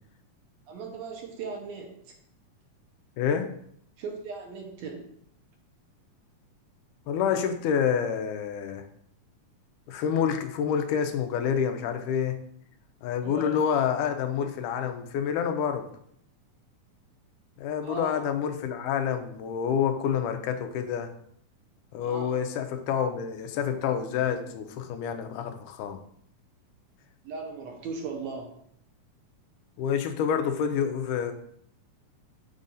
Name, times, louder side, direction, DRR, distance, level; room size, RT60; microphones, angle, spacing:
voice 1, 0.7-2.1 4.0-5.1 13.2-13.5 17.8-18.2 22.0-22.4 27.2-28.6, right 4 dB, 70° right, 1 dB, 1.9 m, -38 dB
voice 2, 3.2-3.5 7.1-8.8 9.9-12.4 13.0-15.9 17.6-21.1 21.9-26.0 29.8-31.3, left 8 dB, 85° left, 7 dB, 2.2 m, -28 dB
7.3 x 2.6 x 5.4 m, 0.67 s
omnidirectional pair, 3.6 m